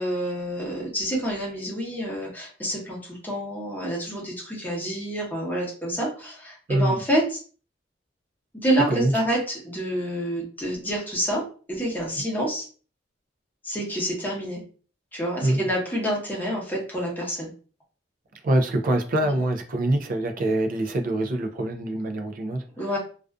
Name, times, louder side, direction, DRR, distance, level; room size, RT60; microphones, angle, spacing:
voice 1, 0.0-7.4 8.5-11.4 11.7-12.6 13.6-14.6 15.1-17.5 19.2-19.4 22.8-23.0, right 1 dB, 10° left, 0.9 m, -28 dB
voice 2, 6.7-7.0 8.9-9.1 12.2-12.3 15.4-15.6 18.4-22.6, right 1 dB, 50° right, 0.4 m, -24 dB
2.4 x 2.4 x 2.2 m
head